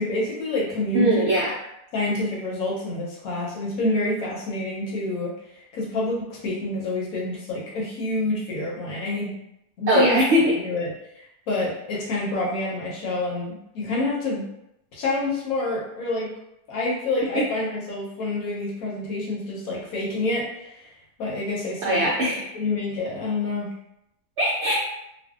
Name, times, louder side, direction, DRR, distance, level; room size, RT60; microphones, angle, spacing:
voice 1, 0.0-1.2 1.9-9.4 9.8-10.2 10.5-14.4 14.9-16.3 16.7-20.9 21.2-22.1 22.5-23.7, left 2 dB, 70° left, -4 dB, 1.1 m, -28 dB
voice 2, 0.9-1.5 9.9-10.6 17.3-17.4 21.8-22.5 24.4-24.7, equal, 75° right, -5 dB, 0.6 m, -20 dB
2.6 x 2.3 x 2.3 m, 0.83 s
omnidirectional pair, 1.7 m